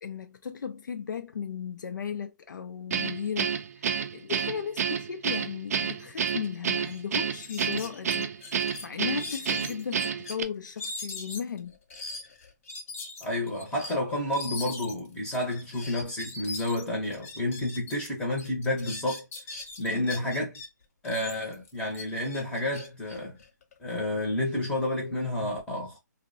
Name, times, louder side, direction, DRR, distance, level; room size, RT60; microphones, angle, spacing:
voice 1, 0.0-11.8 19.9-20.1, left 7 dB, 80° left, 0.4 m, -36 dB
Guitar, 2.9-10.4, right 7 dB, 55° right, 0.4 m, -29 dB
sound 1, 6.4-6.5 6.8-7.0 7.4-10.4 10.8-18.1 18.4-20.7 21.0-23.9, left 3 dB, 45° left, 0.7 m, -41 dB
voice 2, 13.2-19.2 19.8-20.6 21.0-23.4 23.8-26.0, left 1 dB, 10° left, 0.7 m, -30 dB
2.6 x 2.0 x 2.5 m
hypercardioid pair, 160°, 10 cm